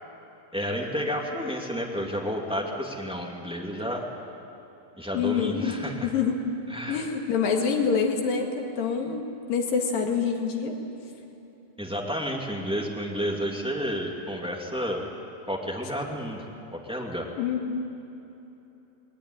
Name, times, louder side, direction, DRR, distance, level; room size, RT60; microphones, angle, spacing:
voice 1, 0.5-4.1 5.0-6.1 6.7-7.0 11.8-15.0 15.5-16.4 16.7-17.3, equal, 5° right, -1 dB, 1.2 m, -31 dB
voice 2, 5.1-6.4 6.9-10.8 17.4-17.9, left 6 dB, 70° left, 2 dB, 3.7 m, -26 dB
20.5 x 19.0 x 10.0 m, 3.0 s
omnidirectional pair, 4.3 m